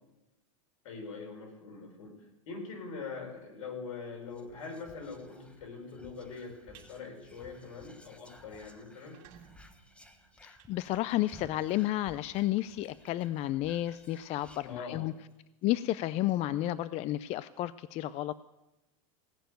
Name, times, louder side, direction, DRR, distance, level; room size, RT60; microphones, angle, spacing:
voice 1, 0.8-9.2 14.6-15.0, left 4 dB, 75° left, 2 dB, 4.6 m, -43 dB
Whispering, 4.3-15.3 15.6-15.7 15.9-16.4, equal, 5° left, 1.2 m, -58 dB
sound 1, 6.7-6.9 7.4-7.6 8.0-8.1 8.3-8.4 8.9-11.5, right 9 dB, 50° right, 2.5 m, -58 dB
voice 2, 10.4-15.1 15.6-18.3, left 15 dB, 35° left, 17 dB, 0.4 m, -31 dB
17.5 x 6.7 x 9.2 m, 0.98 s
hypercardioid pair, 115°, 18 cm